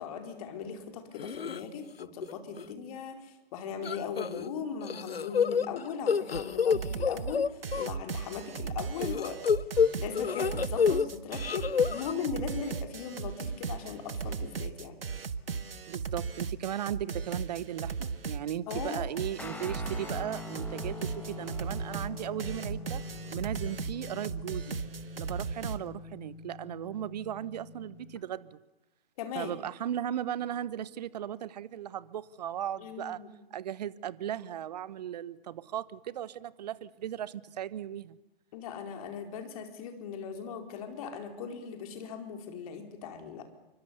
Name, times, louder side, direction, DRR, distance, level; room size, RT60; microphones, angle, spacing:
voice 1, 0.0-9.4 10.0-15.0 18.7-19.1 29.2-29.5 32.8-33.3 38.5-43.4, left 6 dB, 35° left, 5 dB, 4.3 m, -39 dB
sound 1, 1.2-1.6 2.0-2.3 2.6-2.7 3.8-4.5 4.8-7.9 9.0-11.1 11.3-12.1, left 6 dB, 75° left, 0.9 m, -28 dB
sound 2, 6.3-6.4 6.7-7.3 7.6-25.8, right 5 dB, 70° right, 1.5 m, -37 dB
voice 2, 15.9-23.0 23.3-24.8 25.2-28.6 29.3-33.2 33.5-38.2, right 10 dB, 45° right, 18 dB, 1.2 m, -37 dB
Guitar, 19.4-28.2, left 3 dB, 5° left, 1.4 m, -44 dB
27.5 x 24.5 x 7.1 m, 0.94 s
figure-of-eight pair, 130°, 30 cm